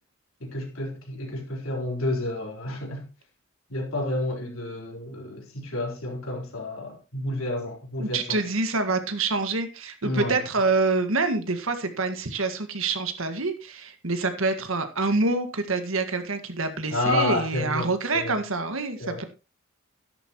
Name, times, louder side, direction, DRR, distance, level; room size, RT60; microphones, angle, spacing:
voice 1, 0.4-3.0 3.7-8.4 10.0-10.4 16.9-18.4 19.0-19.2, left 1 dB, 75° left, 4.2 m, -30 dB
voice 2, 8.0-19.2, right 3 dB, 70° right, 1.8 m, -26 dB
12.5 x 11.0 x 3.1 m
head